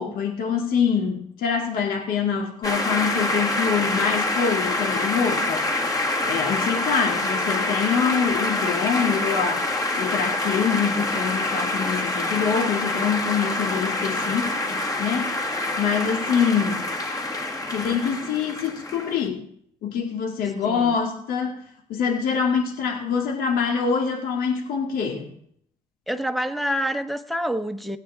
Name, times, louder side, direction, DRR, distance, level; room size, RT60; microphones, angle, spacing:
voice 1, 0.0-5.7 6.2-14.6 15.0-15.4 15.8-16.9 17.7-19.4 19.8-21.6 21.9-25.3, left 6 dB, 80° left, 2.3 m, -25 dB
sound 1, 2.6-19.3, left 2 dB, 25° left, 1.8 m, -26 dB
voice 2, 20.6-21.0 26.1-28.0, equal, ahead, 1.2 m, -27 dB
17.0 x 8.9 x 3.6 m
supercardioid pair, 70°, 15 cm